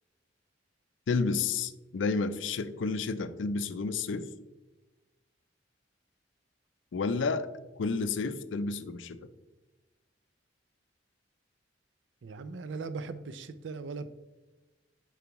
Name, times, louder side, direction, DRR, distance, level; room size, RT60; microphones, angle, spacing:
voice 1, 1.1-4.3 6.9-7.5 7.8-9.2, left 4 dB, 80° left, 12 dB, 0.4 m, -30 dB
voice 2, 12.2-14.1, right 4 dB, 70° right, 12 dB, 0.4 m, -39 dB
6.8 x 4.7 x 2.9 m, 1.1 s
head